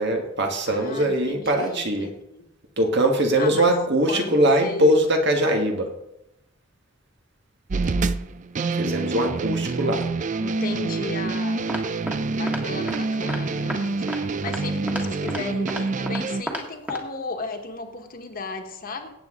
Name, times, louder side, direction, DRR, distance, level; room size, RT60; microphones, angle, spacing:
voice 1, 0.0-2.1 2.8-5.9 8.7-10.1, right 1 dB, 60° right, 3 dB, 1.7 m, -21 dB
voice 2, 0.7-2.5 3.4-3.7 4.1-4.9 10.4-11.7 12.3-19.1, left 3 dB, 50° left, 4 dB, 1.5 m, -35 dB
sound 1, 7.7-16.4, right 3 dB, 40° right, 0.4 m, -27 dB
sound 2, 11.7-12.2 12.5-12.6 12.9-13.0 13.3-13.4 13.7-13.8 14.1-14.2 14.5-14.6 14.9-15.0 15.3-15.4 15.7-16.2 16.5-16.6 16.9-17.0, right 1 dB, 10° right, 1.6 m, -31 dB
17.0 x 8.2 x 3.8 m, 0.86 s
head